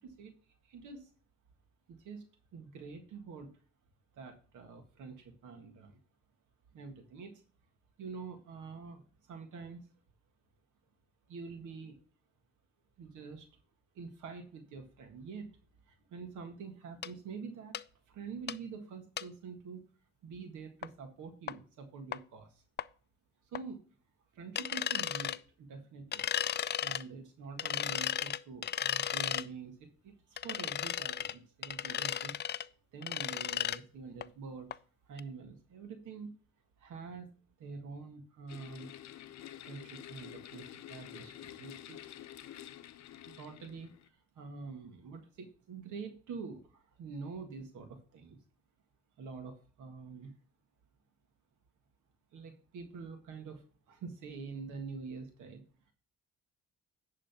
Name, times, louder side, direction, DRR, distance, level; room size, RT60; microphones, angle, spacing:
voice 1, 0.0-0.3 0.6-1.1 1.9-2.2 2.5-3.5 4.1-6.0 6.7-7.4 8.0-9.8 11.3-12.0 13.0-13.5 13.9-15.6 15.9-17.8 18.1-19.9 20.2-22.6 23.5-23.8 24.3-26.3 26.8-34.7 35.1-36.3 36.8-37.3 37.6-38.9 39.6-42.0 43.3-48.4 49.2-50.3 52.3-55.6, right 5 dB, 80° right, 5 dB, 1.7 m, -46 dB
sound 1, 17.0-17.1 17.7-17.8 18.5-18.6 19.2-19.3 20.8-20.9 21.5-21.6 22.1-22.2 22.8-22.9 23.5-23.6 24.6-25.4 26.1-27.0 27.6-29.5 30.4-31.3 31.6-32.6 33.0-33.8 34.2-34.3 34.7-34.8 35.2-35.3, left 10 dB, 35° left, 0.4 m, -34 dB
sound 2, 38.5-44.1, left 11 dB, 65° left, 0.7 m, -49 dB
10.5 x 3.8 x 5.8 m, 0.40 s
cardioid pair, 90°, 30 cm